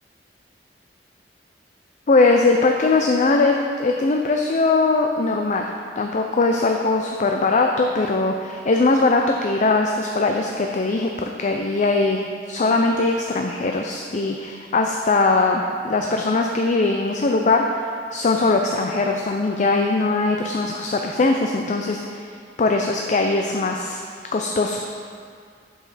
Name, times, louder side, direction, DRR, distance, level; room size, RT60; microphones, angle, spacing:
voice 1, 2.1-5.7 6.0-17.6 18.1-22.0 22.6-24.0 24.3-24.8, left 3 dB, 45° left, 3 dB, 0.4 m, -20 dB
8.3 x 7.2 x 4.2 m, 2.2 s
head